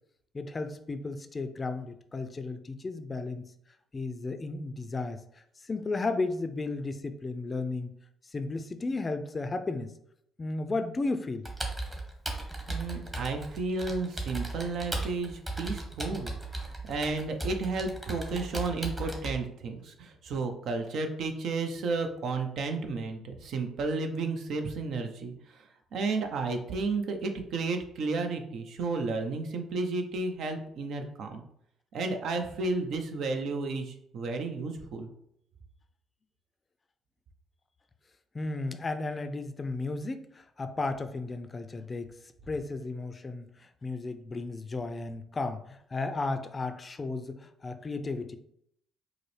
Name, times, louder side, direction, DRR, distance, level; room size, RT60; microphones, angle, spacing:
voice 1, 0.3-3.5 3.9-7.9 8.3-9.9 10.4-11.5 38.3-42.1 42.5-48.4, left 3 dB, 35° left, 9 dB, 0.4 m, -34 dB
Computer keyboard, 11.5-19.3, right 2 dB, 20° right, 1.1 m, -36 dB
voice 2, 12.7-31.4 31.9-35.1, right 3 dB, 65° right, 5 dB, 0.5 m, -32 dB
4.7 x 2.0 x 3.1 m, 0.73 s
hypercardioid pair, 55°, 0 cm